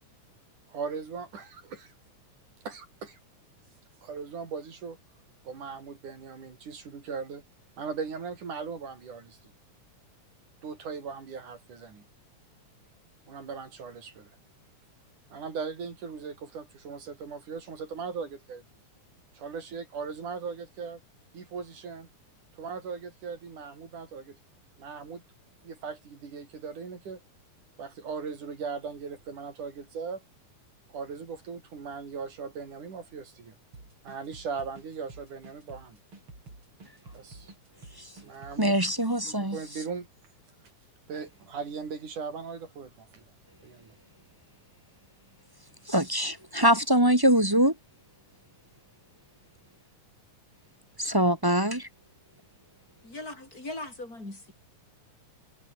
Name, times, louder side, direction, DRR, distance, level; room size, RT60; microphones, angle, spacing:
voice 1, 0.7-1.9 2.7-3.2 4.0-5.0 5.4-7.4 7.8-9.4 10.6-12.0 13.3-14.3 15.3-18.6 19.4-21.0 21.3-22.1 22.5-24.4 24.8-25.2 25.6-27.2 27.8-30.2 30.9-33.5 34.0-36.0 37.1-37.5 38.2-38.8 39.2-40.1 41.1-43.2 43.6-43.9, right 5 dB, 75° right, 6.0 m, -38 dB
sound 1, 33.7-39.0, right 3 dB, 40° right, 7.2 m, -50 dB
voice 2, 38.6-39.6 45.9-47.7 51.0-51.9, right 1 dB, 15° right, 0.9 m, -23 dB
voice 3, 53.0-54.5, left 2 dB, 25° left, 7.9 m, -39 dB
omnidirectional pair, 3.6 m